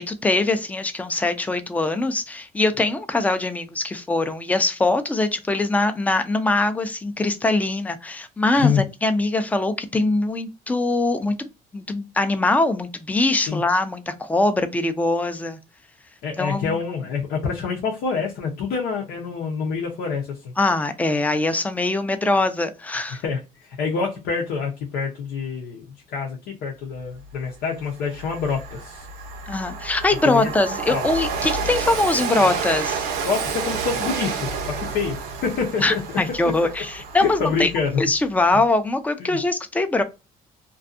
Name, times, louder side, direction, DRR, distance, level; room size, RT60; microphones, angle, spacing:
voice 1, 0.0-11.5 11.7-15.6 16.4-16.7 20.6-23.2 29.5-33.1 35.8-37.7 38.0-40.0, left 2 dB, 10° left, 0.4 m, -22 dB
voice 2, 16.2-20.5 23.2-29.1 30.1-31.1 33.3-36.0 36.4-36.5 37.2-38.0 39.2-39.4, left 5 dB, 90° left, 0.7 m, -26 dB
Train, 27.3-27.4 27.8-38.2, right 5 dB, 90° right, 0.7 m, -30 dB
2.5 x 2.3 x 2.5 m
cardioid pair, 115°, 16 cm